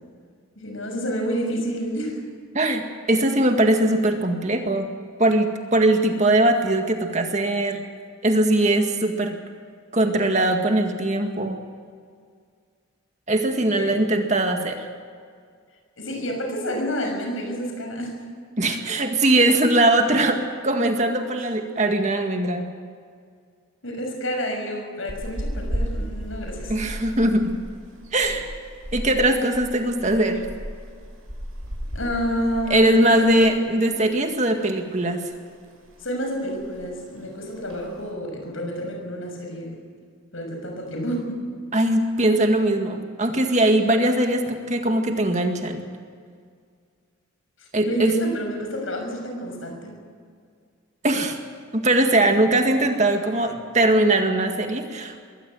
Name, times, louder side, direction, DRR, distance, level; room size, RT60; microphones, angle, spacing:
voice 1, 0.5-2.2 13.7-14.0 16.0-18.2 23.8-26.8 31.9-33.4 36.0-39.8 40.3-41.4 47.8-49.9, equal, 75° left, 3 dB, 6.5 m, -29 dB
voice 2, 3.1-4.9 5.2-7.8 8.2-9.4 9.9-11.6 13.3-14.9 18.6-22.7 26.7-27.5 28.1-28.5 28.9-30.5 32.7-35.3 41.7-45.9 47.7-48.1 51.0-51.4 51.7-55.2, right 1 dB, 35° right, 4 dB, 2.0 m, -21 dB
sound 1, 25.1-33.6 33.9-34.1 34.5-35.3 35.6-36.0 36.3-36.4 36.5-37.0 37.5-38.0, equal, 85° right, 6.6 m, -34 dB
22.0 x 17.0 x 7.8 m, 2.1 s
head